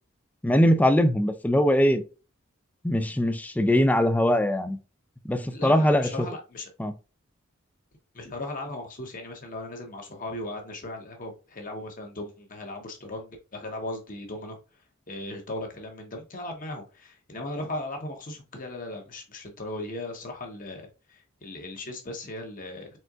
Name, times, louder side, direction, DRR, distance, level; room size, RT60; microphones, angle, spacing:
voice 1, 0.4-2.0 2.8-4.8 5.2-6.1 6.8-6.9, equal, 10° left, 0.4 m, -21 dB
voice 2, 5.5-6.7 8.1-14.6 15.1-23.0, left 2 dB, 40° left, 1.1 m, -37 dB
4.3 x 3.7 x 2.4 m
head